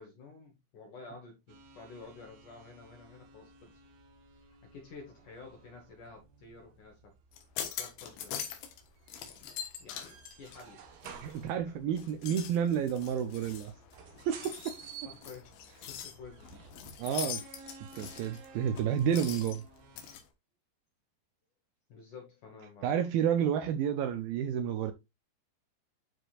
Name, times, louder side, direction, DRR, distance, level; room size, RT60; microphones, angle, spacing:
voice 1, 0.0-3.8 4.4-7.1 7.6-8.6 9.8-10.8 11.6-11.8 15.0-15.5 15.8-16.6 21.9-23.2, left 4 dB, 60° left, 2.4 m, -51 dB
sound 1, 1.5-20.2, right 5 dB, 70° right, 3.1 m, -54 dB
sound 2, 7.3-8.8 9.1-11.5 11.9-20.2, left 9 dB, 85° left, 3.6 m, -43 dB
voice 2, 11.2-13.7 14.3-14.7 17.0-17.4 17.9-19.6 22.8-24.9, right 8 dB, 85° right, 2.1 m, -30 dB
12.0 x 4.9 x 2.4 m
omnidirectional pair, 5.0 m